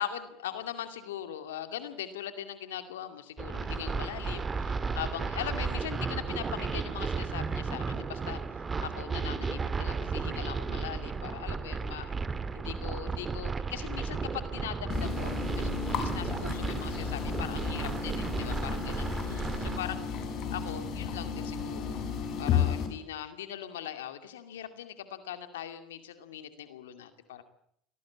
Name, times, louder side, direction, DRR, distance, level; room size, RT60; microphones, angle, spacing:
voice 1, 0.0-8.4 8.8-12.1 12.5-20.1 20.5-22.0 22.4-27.4, left 10 dB, 85° left, 9 dB, 2.3 m, -40 dB
sound 1, 3.4-19.8, right 4 dB, 25° right, 2.1 m, -34 dB
sound 2, 14.9-22.9, left 7 dB, 55° left, 5.5 m, -33 dB
24.0 x 18.0 x 8.6 m, 0.71 s
hypercardioid pair, 80°, 0 cm